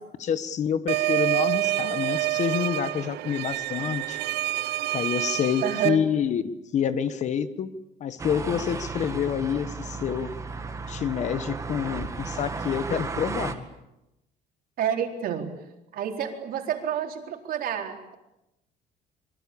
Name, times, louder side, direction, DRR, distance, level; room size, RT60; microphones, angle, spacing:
voice 1, 0.2-4.2 4.9-7.7 8.0-10.4 10.9-13.6, left 8 dB, 45° left, 13 dB, 1.3 m, -28 dB
sound 1, 0.9-5.9, right 17 dB, 80° right, 0.9 m, -27 dB
voice 2, 5.6-6.1 14.8-15.5 15.9-18.2, right 8 dB, 60° right, 4 dB, 4.0 m, -29 dB
sound 2, 8.2-13.5, right 4 dB, 20° right, 2.0 m, -34 dB
26.5 x 23.5 x 8.7 m, 0.90 s
cardioid pair, 170°, 17 cm